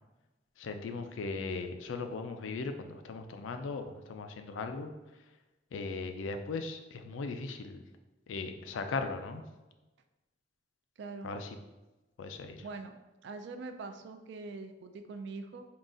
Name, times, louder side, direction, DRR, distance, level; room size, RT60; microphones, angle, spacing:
voice 1, 0.6-4.9 5.7-7.8 8.3-9.4 11.2-11.5 12.2-12.6, left 4 dB, 85° left, 7 dB, 0.4 m, -38 dB
voice 2, 11.0-11.3 12.6-12.9 13.2-15.7, right 3 dB, 65° right, 7 dB, 0.4 m, -43 dB
3.8 x 2.4 x 3.7 m, 1.1 s
head